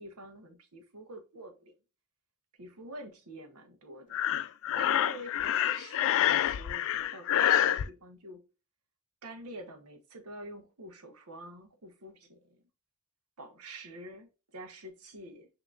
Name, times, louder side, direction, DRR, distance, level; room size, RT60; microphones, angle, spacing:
voice 1, 0.0-1.7 2.6-4.2 4.7-8.4 9.2-12.6 13.4-15.5, right 1 dB, 85° right, 1.1 m, -47 dB
Breathing, 4.1-7.8, left 11 dB, 65° left, 0.3 m, -27 dB
5.8 x 2.9 x 2.5 m
head